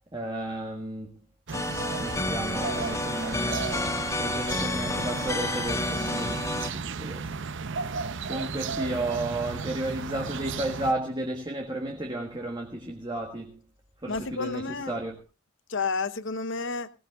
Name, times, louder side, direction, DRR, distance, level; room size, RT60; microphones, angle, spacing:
voice 1, 0.1-1.2 2.0-3.8 4.2-7.3 8.3-13.6 14.0-15.1, right 1 dB, 20° right, 1.7 m, -33 dB
sound 1, 1.5-6.7, left 2 dB, 15° left, 0.8 m, -30 dB
sound 2, 1.5-10.9, right 5 dB, 55° right, 0.7 m, -34 dB
voice 2, 14.1-15.0 15.7-16.9, left 4 dB, 60° left, 1.0 m, -30 dB
20.0 x 17.5 x 2.3 m
head